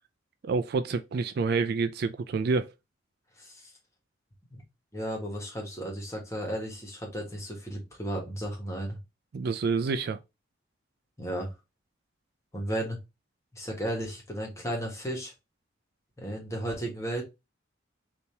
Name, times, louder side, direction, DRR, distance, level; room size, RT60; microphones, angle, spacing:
voice 1, 0.4-2.7 9.3-10.2, right 4 dB, 55° right, 0.3 m, -28 dB
voice 2, 3.4-3.7 4.5-4.6 4.9-9.0 11.2-11.5 12.5-13.0 13.5-15.3 16.2-17.2, right 1 dB, 15° left, 1.4 m, -34 dB
3.5 x 2.8 x 4.3 m
head